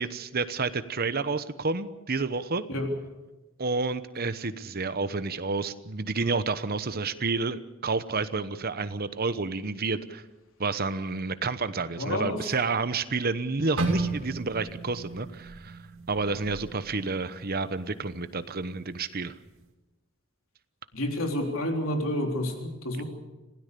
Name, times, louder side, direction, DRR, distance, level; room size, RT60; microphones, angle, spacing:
voice 1, 0.0-2.6 3.6-10.2 10.6-15.8 16.1-19.3, right 4 dB, 45° right, 12 dB, 1.0 m, -30 dB
voice 2, 12.0-12.4 20.9-23.0, left 1 dB, 70° left, 3 dB, 3.7 m, -29 dB
sound 1, 13.8-17.8 18.2-18.4 19.1-19.4, right 2 dB, 70° right, 2.7 m, -34 dB
26.5 x 17.0 x 6.9 m, 1.1 s
head